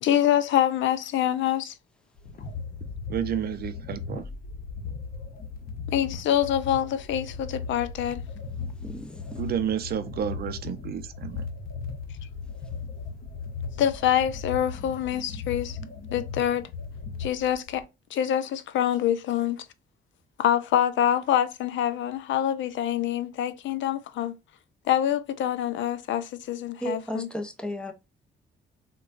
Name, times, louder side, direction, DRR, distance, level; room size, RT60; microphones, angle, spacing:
voice 1, 0.0-1.7 5.9-8.2 13.8-15.8 16.1-16.7 17.2-17.8 18.1-19.7 20.4-24.4 24.9-27.3, left 10 dB, 70° left, 0.5 m, -25 dB
sound 1, 2.2-17.8, left 5 dB, 50° left, 0.8 m, -37 dB
voice 2, 3.1-4.2 9.4-11.4, right 9 dB, 50° right, 0.5 m, -30 dB
voice 3, 8.8-9.4 26.8-27.9, equal, 5° left, 0.6 m, -34 dB
3.8 x 2.2 x 2.4 m
cardioid pair, 90°, 20 cm